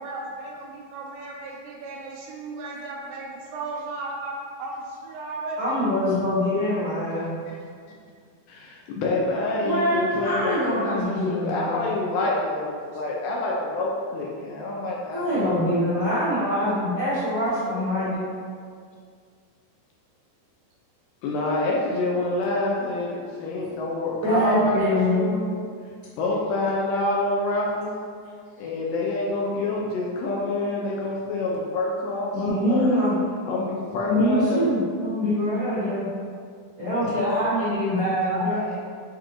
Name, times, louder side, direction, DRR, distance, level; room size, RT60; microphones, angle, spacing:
voice 1, 0.0-5.7 38.2-38.8, right 3 dB, 80° right, -1 dB, 2.1 m, -35 dB
voice 2, 5.6-7.4 9.6-11.9 15.1-18.2 24.2-25.3 32.3-33.2 34.0-36.0 36.8-38.6, equal, 65° right, -14 dB, 1.0 m, -24 dB
voice 3, 7.1-7.7 8.5-15.5 21.2-25.7 26.2-28.0 28.6-33.1 33.4-34.7, left 2 dB, 80° left, -3 dB, 2.1 m, -27 dB
7.2 x 2.5 x 2.9 m, 2.1 s
omnidirectional pair, 4.3 m